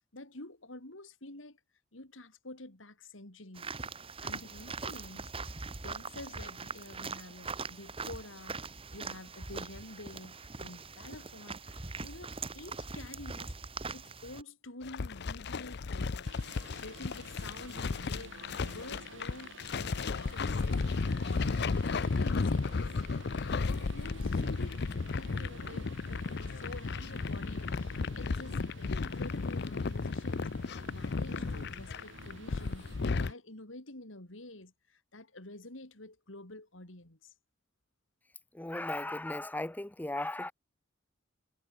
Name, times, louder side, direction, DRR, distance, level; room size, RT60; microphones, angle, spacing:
voice 1, 0.0-1.6 1.9-3.7 4.2-5.6 5.8-13.5 13.9-16.3 16.7-22.9 23.4-30.5 30.9-37.3, left 2 dB, 75° left, 3.9 m, -49 dB
sound 1, 3.6-14.4, right 4 dB, 30° right, 1.6 m, -42 dB
sound 2, 14.8-33.3, left 4 dB, 60° left, 0.6 m, -34 dB
sound 3, 16.2-33.3, right 3 dB, 70° right, 4.9 m, -52 dB
voice 2, 38.5-40.5, left 1 dB, 10° left, 0.6 m, -36 dB
head